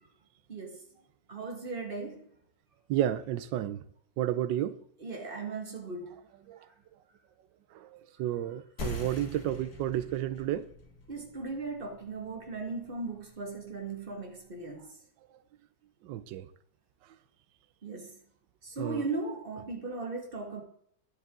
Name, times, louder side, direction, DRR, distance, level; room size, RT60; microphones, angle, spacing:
voice 1, 1.3-2.2 5.0-6.2 11.1-14.8 17.8-18.2 18.6-20.6, right 3 dB, 30° right, 1.8 m, -37 dB
voice 2, 2.9-3.8 4.2-4.8 6.5-6.6 7.7-10.7 16.0-16.5 18.8-19.0, right 12 dB, 80° right, 1.3 m, -31 dB
sound 1, 8.8-13.9, left 3 dB, 55° left, 2.2 m, -44 dB
10.5 x 7.7 x 3.7 m
omnidirectional pair, 2.0 m